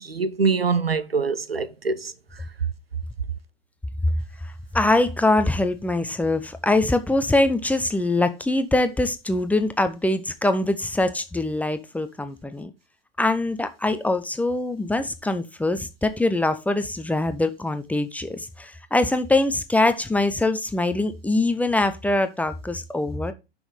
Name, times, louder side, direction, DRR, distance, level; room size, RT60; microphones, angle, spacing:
voice 1, 0.0-2.1, right 4 dB, 85° right, 0.7 m, -24 dB
voice 2, 4.7-12.7 13.2-23.3, left 2 dB, 5° left, 0.7 m, -23 dB
6.1 x 6.0 x 5.0 m
figure-of-eight pair, 90°, 29 cm